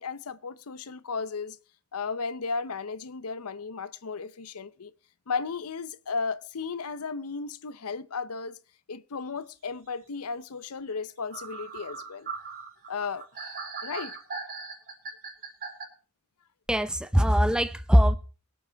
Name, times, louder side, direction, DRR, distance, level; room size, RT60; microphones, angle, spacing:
voice 1, 0.0-1.6 1.9-4.9 5.3-8.6 8.9-12.3 12.9-13.3 13.8-14.1, left 4 dB, 75° left, 0.7 m, -34 dB
sound 1, 10.9-11.0 11.3-15.8, right 4 dB, 45° right, 5.2 m, -39 dB
voice 2, 16.7-18.2, equal, 5° right, 0.7 m, -21 dB
23.5 x 8.7 x 3.5 m
head